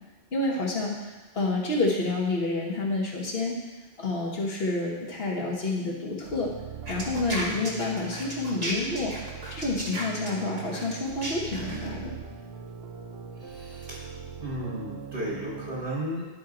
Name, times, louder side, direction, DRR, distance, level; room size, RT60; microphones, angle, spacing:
voice 1, 0.3-3.6 4.0-6.5 6.9-9.1 9.5-12.2, left 2 dB, 70° left, -2 dB, 1.6 m, -29 dB
sound 1, 6.2-15.8, right 7 dB, 85° right, 1.0 m, -41 dB
sound 2, 6.9-11.9, right 1 dB, 40° right, 1.2 m, -34 dB
voice 2, 13.4-14.1 14.4-16.3, right 1 dB, 60° right, -7 dB, 1.3 m, -34 dB
10.5 x 4.4 x 3.8 m, 1.3 s
omnidirectional pair, 1.1 m